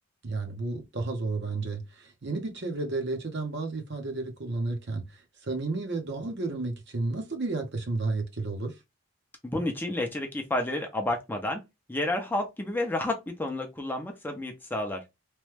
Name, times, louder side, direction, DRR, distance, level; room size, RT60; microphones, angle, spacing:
voice 1, 0.2-8.8, right 3 dB, 55° right, 0.7 m, -32 dB
voice 2, 9.4-11.6 11.9-15.0, left 1 dB, 10° left, 0.5 m, -30 dB
3.0 x 2.2 x 3.2 m
head